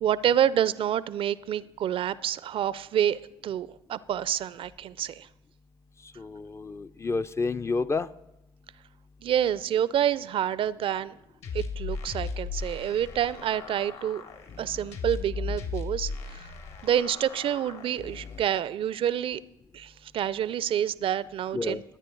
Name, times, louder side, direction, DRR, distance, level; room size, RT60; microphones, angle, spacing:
voice 1, 0.0-5.3 9.2-11.1 11.5-14.2 14.6-16.5 16.8-19.4 19.7-21.8, right 10 dB, 45° right, 19 dB, 0.5 m, -28 dB
voice 2, 6.2-8.1 21.5-21.8, left 3 dB, 20° left, 12 dB, 0.5 m, -30 dB
sound 1, 11.4-18.4, left 5 dB, 55° left, 1.8 m, -37 dB
20.0 x 9.3 x 3.9 m, 0.91 s
hypercardioid pair, 65°, 12 cm